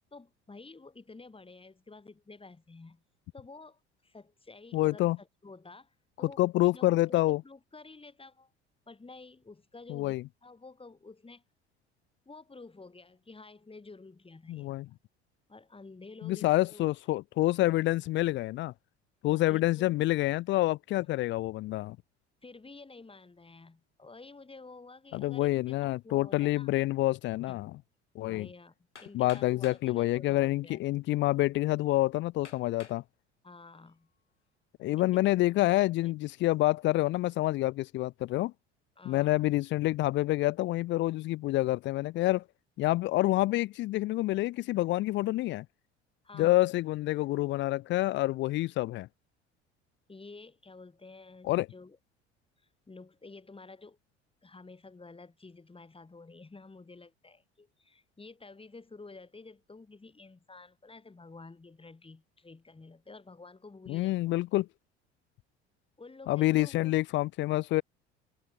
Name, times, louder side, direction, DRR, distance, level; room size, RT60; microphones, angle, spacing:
voice 1, 0.1-3.0 3.3-8.5 8.9-10.1 10.4-11.4 12.3-14.8 15.5-16.9 19.2-20.0 22.4-26.7 27.5-27.6 28.3-28.7 29.0-30.8 33.4-34.1 35.0-35.3 35.7-36.1 39.0-39.5 46.2-46.7 50.1-52.0 52.9-54.0 54.4-64.2 66.0-67.0, left 3 dB, 15° left, 5.7 m, -51 dB
voice 2, 4.7-5.2 6.4-7.4 9.9-10.2 14.5-14.9 16.2-18.7 19.2-22.0 25.1-27.7 28.2-28.5 29.1-33.0 34.8-38.5 39.1-42.4 42.8-45.7 46.3-49.1 51.4-51.7 63.9-64.7 66.3-67.8, left 17 dB, 35° left, 0.4 m, -27 dB
Hammer, 29.0-29.9 30.8-30.9 31.5-31.6 32.4-33.0 33.6-34.1, left 6 dB, 85° left, 2.3 m, -51 dB
figure-of-eight pair, 60°, 34 cm